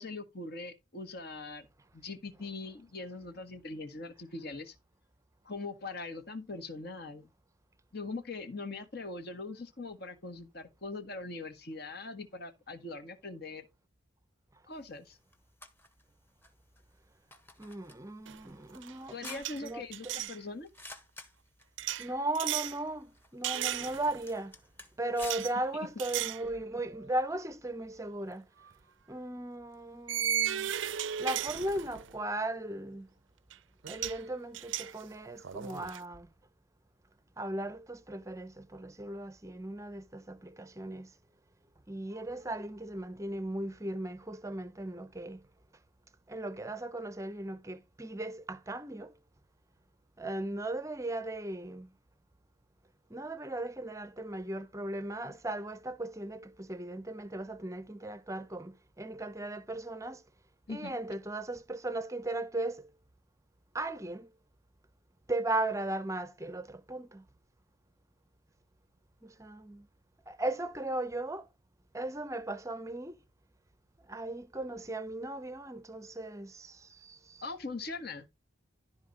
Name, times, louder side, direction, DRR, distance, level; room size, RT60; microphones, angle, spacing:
voice 1, 0.0-1.7 1.9-4.7 5.4-7.3 7.9-13.6 14.7-15.2 19.1-20.7 60.7-61.0 77.4-78.3, left 3 dB, 50° left, 1.6 m, -41 dB
sound 1, 14.7-26.3, left 2 dB, 10° left, 1.3 m, -54 dB
voice 2, 17.6-20.3 22.0-24.5 25.0-28.4 29.1-30.7 31.2-33.1 33.9-36.3 37.4-41.1 41.9-45.4 46.3-49.1 50.2-51.9 53.1-60.2 60.7-62.9 63.7-64.3 65.3-67.2 69.2-69.9 70.3-71.5 71.9-73.2 74.1-77.4, right 1 dB, 15° right, 0.7 m, -37 dB
sound 2, 18.3-18.5 18.7-20.4 21.8-22.8 23.4-24.3 25.2-25.5 26.0-26.5 26.9-27.1 28.6-28.7 30.1-32.2 33.5-33.6 33.8-34.2 34.5-36.0, right 10 dB, 60° right, 0.5 m, -35 dB
12.5 x 4.2 x 5.3 m
head